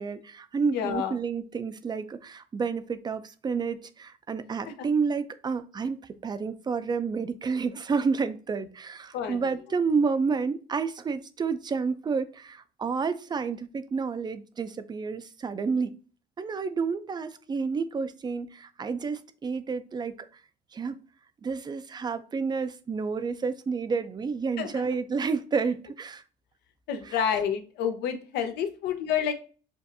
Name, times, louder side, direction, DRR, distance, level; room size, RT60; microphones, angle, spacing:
voice 1, 0.0-16.0 16.4-20.3 20.7-21.0 21.4-26.2 27.0-27.2, right 5 dB, 25° right, 0.5 m, -30 dB
voice 2, 0.7-1.1 4.8-4.9 9.1-9.4 24.6-24.9 26.9-29.3, left 8 dB, 85° left, 0.8 m, -29 dB
7.0 x 2.6 x 2.6 m
cardioid pair, 110°, 17 cm